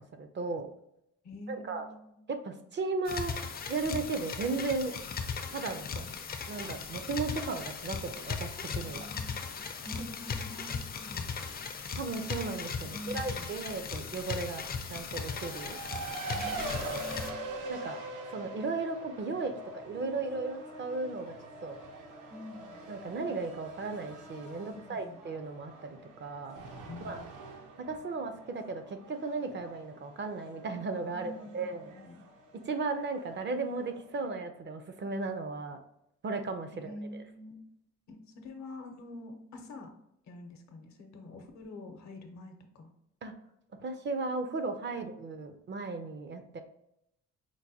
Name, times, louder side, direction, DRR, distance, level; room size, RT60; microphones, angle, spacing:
voice 1, 0.2-0.7 1.5-1.9 2.3-3.3 3.7-4.9 5.5-6.1 6.5-9.1 12.0-15.8 16.8-17.0 17.7-18.0 18.3-21.3 21.6-21.8 22.9-26.6 27.0-27.2 27.8-31.9 32.7-35.8 36.2-37.0 43.2-43.3 43.8-46.6, right 3 dB, 40° right, 7 dB, 0.4 m, -35 dB
voice 2, 1.2-2.2 5.8-6.1 8.8-11.6 12.8-13.5 16.3-17.4 22.3-22.8 24.6-25.2 26.9-27.3 31.1-32.3 36.7-37.6 38.1-39.9 40.3-42.9 44.9-45.0, left 2 dB, 65° left, 5 dB, 0.7 m, -46 dB
sound 1, 3.0-17.3, left 5 dB, 30° left, 0.4 m, -38 dB
Race car auto racing, 15.1-34.3, right 2 dB, 80° right, 0.8 m, -44 dB
4.5 x 2.2 x 2.7 m, 0.78 s
cardioid pair, 90°, 30 cm